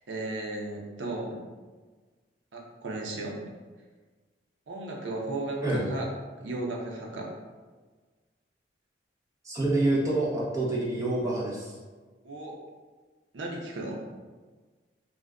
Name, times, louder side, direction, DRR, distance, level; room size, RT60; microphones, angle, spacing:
voice 1, 0.1-1.4 2.5-3.5 4.7-6.1 6.4-7.3 12.2-12.5 13.3-14.0, right 2 dB, 85° right, -1 dB, 0.6 m, -35 dB
voice 2, 9.4-11.8, right 2 dB, 20° right, -5 dB, 0.6 m, -27 dB
2.4 x 2.1 x 3.5 m, 1.4 s
head